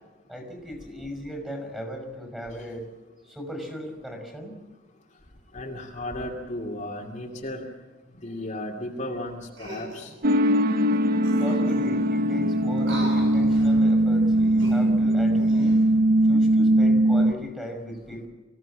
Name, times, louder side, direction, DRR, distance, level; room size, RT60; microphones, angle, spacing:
voice 1, 0.3-2.9 3.2-4.6 11.4-15.8 16.2-18.3, equal, 5° right, 5 dB, 5.4 m, -37 dB
voice 2, 5.5-7.7 8.2-10.1 11.5-11.6, left 1 dB, 40° left, -1 dB, 2.5 m, -34 dB
sound 1, 9.5-10.1 10.9-11.0 11.2-12.1 12.8-13.8 14.4-15.8 16.4-16.6, right 2 dB, 75° right, 7.6 m, -40 dB
sound 2, 10.2-17.3, right 1 dB, 50° right, 0.8 m, -20 dB
25.0 x 16.5 x 7.5 m, 1.3 s
head